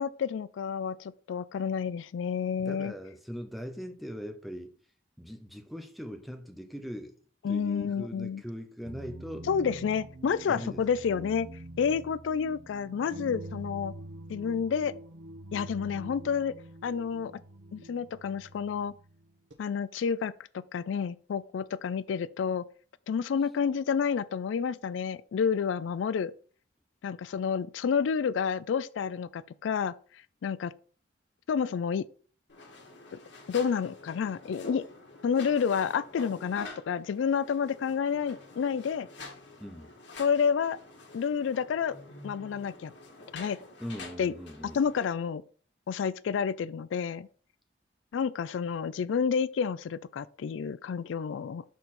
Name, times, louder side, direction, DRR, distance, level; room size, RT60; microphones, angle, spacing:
voice 1, 0.0-2.9 7.4-8.4 9.5-11.5 11.8-13.9 14.3-14.9 15.5-16.5 16.8-17.3 17.7-18.9 19.6-22.6 23.1-26.3 27.0-29.9 30.4-30.7 31.5-32.1 33.5-34.8 35.2-39.1 40.2-40.8 41.1-42.0 42.2-42.9 43.3-43.6 44.2-44.3 44.7-45.4 45.9-47.3 48.1-51.6, left 6 dB, 90° left, 0.3 m, -29 dB
voice 2, 2.6-4.8 5.2-7.2 7.5-9.5 10.5-10.8 39.6-39.9 43.8-44.8, equal, ahead, 0.8 m, -40 dB
sound 1, 8.8-19.5, right 1 dB, 80° right, 1.0 m, -45 dB
sound 2, 32.5-45.1, left 3 dB, 70° left, 1.7 m, -47 dB
6.4 x 3.9 x 4.2 m
head